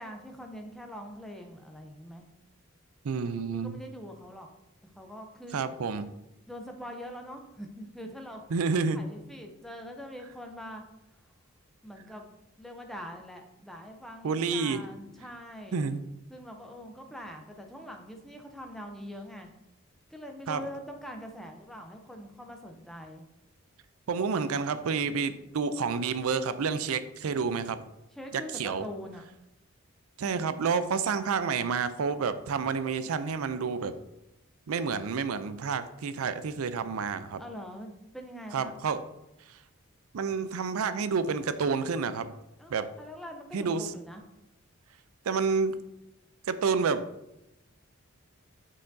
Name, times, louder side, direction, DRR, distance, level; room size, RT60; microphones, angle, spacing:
voice 1, 0.0-2.2 3.5-4.5 4.8-5.6 6.5-10.8 11.8-12.3 12.6-15.9 16.3-19.5 20.1-23.2 28.1-29.3 37.4-38.8 42.6-44.2, equal, ahead, 3 dB, 0.6 m, -43 dB
voice 2, 3.0-3.7 5.5-6.0 8.5-9.0 14.2-14.8 15.7-16.0 20.5-20.6 24.1-27.8 28.3-28.8 30.2-34.0 34.7-37.4 38.5-39.0 39.5-39.6 40.1-42.3 42.7-42.9 43.5-43.9 45.3-45.8 46.5-47.0, right 5 dB, 80° right, 12 dB, 0.4 m, -29 dB
6.3 x 5.7 x 2.6 m, 0.88 s
head